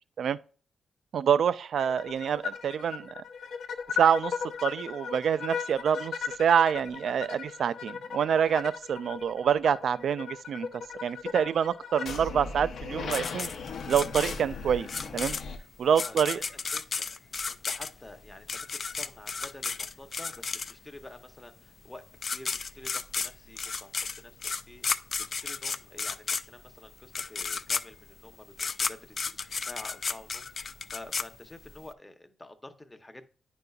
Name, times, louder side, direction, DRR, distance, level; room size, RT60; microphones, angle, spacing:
voice 1, 1.1-3.2 3.9-4.3 4.6-10.7 11.0-13.5 13.9-14.9 15.1-15.4 15.8-16.4, right 8 dB, 70° right, 0.3 m, -26 dB
sound 1, 1.8-15.6, left 6 dB, 75° left, 0.7 m, -37 dB
sound 2, 13.1-21.0 21.9-22.0 22.2-31.9, left 4 dB, 40° left, 0.3 m, -33 dB
voice 2, 15.8-17.1 17.4-22.0 22.3-33.3, left 1 dB, 15° left, 0.7 m, -49 dB
9.7 x 5.3 x 2.3 m
wide cardioid pair, 140°, 0 cm